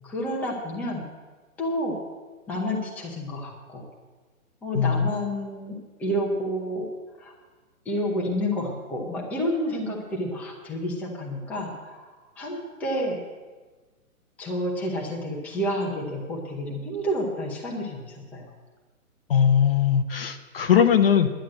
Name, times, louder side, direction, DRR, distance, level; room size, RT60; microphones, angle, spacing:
voice 1, 0.0-1.1 1.6-2.0 2.5-3.9 4.6-6.9 7.2-7.3 7.8-13.2 14.4-18.5, equal, 5° left, -2 dB, 0.8 m, -30 dB
voice 2, 4.7-5.1 19.3-21.3, left 8 dB, 40° left, 8 dB, 0.8 m, -20 dB
10.5 x 10.0 x 7.6 m, 1.3 s
hypercardioid pair, 155°, 43 cm